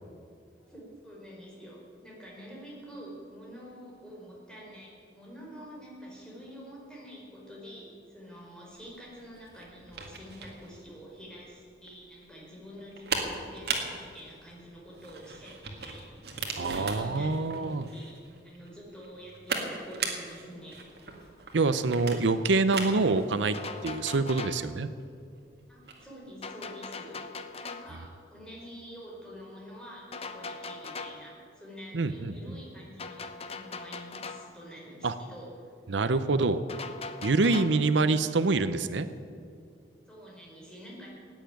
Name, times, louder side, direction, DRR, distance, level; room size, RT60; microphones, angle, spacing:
voice 1, 0.6-18.2 18.4-20.8 25.7-27.2 27.6-35.7 40.1-41.2, equal, 5° left, -4 dB, 4.5 m, -47 dB
sound 1, 8.7-26.1, right 4 dB, 60° right, 2.1 m, -39 dB
voice 2, 16.6-17.8 21.5-23.6 23.8-24.9 31.9-32.6 35.0-35.1 35.9-36.6 37.2-39.1, right 3 dB, 90° right, 12 dB, 0.7 m, -26 dB
sound 2, 23.5-24.7 26.4-28.0 30.1-31.3 33.0-34.6 36.7-37.8, left 4 dB, 35° left, 0.8 m, -40 dB
16.5 x 9.1 x 9.1 m, 2.2 s
head